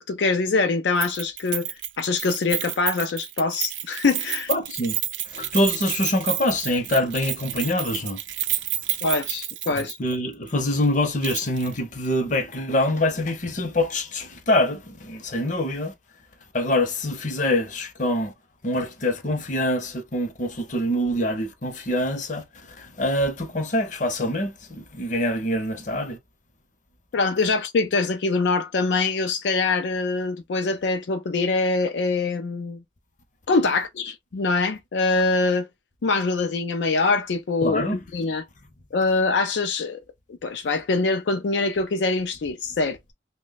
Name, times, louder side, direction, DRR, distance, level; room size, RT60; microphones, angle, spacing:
voice 1, 0.0-4.5 9.0-10.0 27.1-32.8 33.5-35.7 36.0-38.4 38.9-40.0 40.4-43.1, left 3 dB, 75° left, 0.4 m, -24 dB
Keys jangling, 1.0-10.2 10.5-10.6 11.2-11.7 12.0-12.1, right 13 dB, 90° right, 0.5 m, -30 dB
voice 2, 4.5-5.0 5.3-8.2 10.0-15.9 16.5-18.3 18.6-22.4 22.8-26.2 37.6-38.0, left 1 dB, 45° left, 0.8 m, -25 dB
3.1 x 2.2 x 3.9 m
head